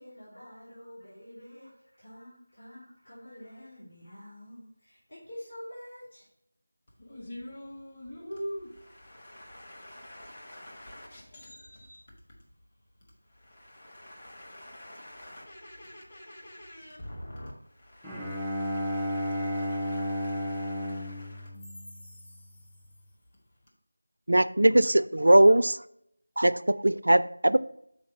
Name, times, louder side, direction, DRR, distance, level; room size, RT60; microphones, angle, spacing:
voice 1, 0.0-6.3, left 1 dB, 60° left, 2.8 m, -47 dB
voice 2, 7.0-12.0 13.4-17.5 17.8-21.5, equal, 30° left, 1.4 m, -45 dB
Bowed string instrument, 18.0-22.4, equal, 5° left, 0.4 m, -33 dB
voice 3, 24.3-25.8 26.4-27.6, right 1 dB, 80° right, 0.4 m, -20 dB
5.9 x 4.1 x 5.7 m
figure-of-eight pair, 175°, 0 cm